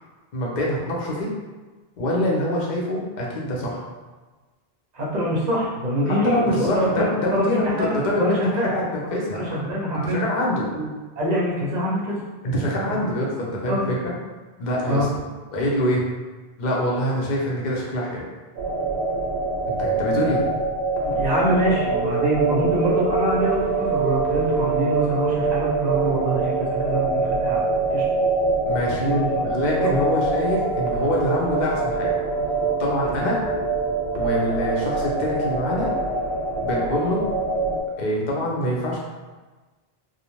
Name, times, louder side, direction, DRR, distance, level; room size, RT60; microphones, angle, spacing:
voice 1, 0.3-1.3 2.0-3.8 6.1-9.5 9.9-10.7 12.4-14.1 14.6-15.1 15.5-16.1 16.6-18.2 19.7-20.5 28.7-29.0 29.4-32.1 32.8-33.4 34.1-35.9 36.6-37.3 38.0-39.0, left 1 dB, 55° left, -3 dB, 0.7 m, -25 dB
voice 2, 4.9-7.0 7.3-7.9 8.2-8.7 9.3-10.2 10.7-10.9 11.2-12.2 12.5-12.7 13.7-13.8 14.9-15.1 21.1-27.6 27.9-28.0 29.0-29.5 29.8-30.1 33.1-33.2, right 1 dB, 50° right, -5 dB, 0.6 m, -24 dB
sound 1, 18.6-37.8, right 3 dB, 85° right, 0.8 m, -24 dB
2.5 x 2.0 x 3.0 m, 1.3 s
omnidirectional pair, 1.0 m